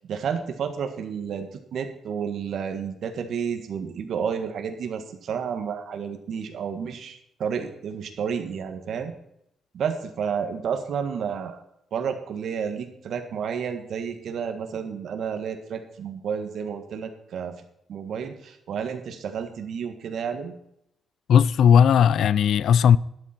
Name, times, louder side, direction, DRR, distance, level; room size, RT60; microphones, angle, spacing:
voice 1, 0.0-9.1 9.7-11.6 11.9-17.6 17.9-20.5, right 7 dB, 70° right, 1.7 m, -31 dB
voice 2, 21.3-23.0, left 8 dB, 75° left, 0.4 m, -17 dB
12.0 x 11.5 x 4.5 m
cardioid pair, 120°, 0 cm